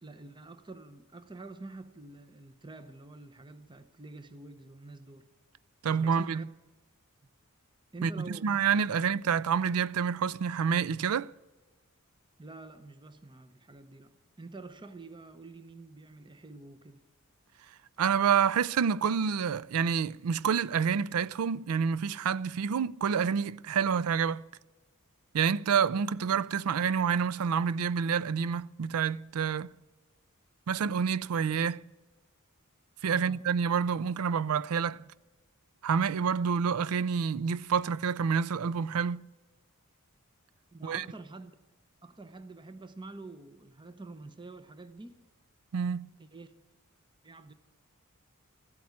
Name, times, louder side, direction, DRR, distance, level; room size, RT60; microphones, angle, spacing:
voice 1, 0.0-5.3 5.9-6.4 7.9-8.6 12.4-17.0 33.1-33.4 40.7-41.5 42.0-45.2 46.2-46.5 47.2-47.5, right 3 dB, 20° right, 0.8 m, -47 dB
voice 2, 5.8-6.4 8.0-11.3 18.0-24.4 25.3-29.7 30.7-31.8 33.0-35.0 35.8-39.2 40.8-41.0 45.7-46.1, right 6 dB, 75° right, 0.4 m, -28 dB
14.5 x 8.6 x 9.5 m
head